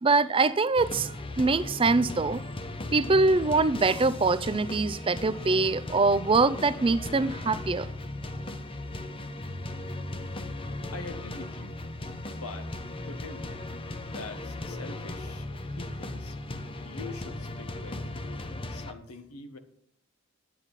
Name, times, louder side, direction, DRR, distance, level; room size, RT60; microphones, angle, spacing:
voice 1, 0.0-2.4 2.9-7.9, right 3 dB, 25° right, 0.4 m, -24 dB
sound 1, 0.8-18.9, left 2 dB, 25° left, 0.7 m, -37 dB
voice 2, 10.2-11.8 12.3-13.6 14.1-16.4 16.8-18.0 18.7-19.6, left 3 dB, 85° left, 1.4 m, -44 dB
10.0 x 9.7 x 5.4 m
head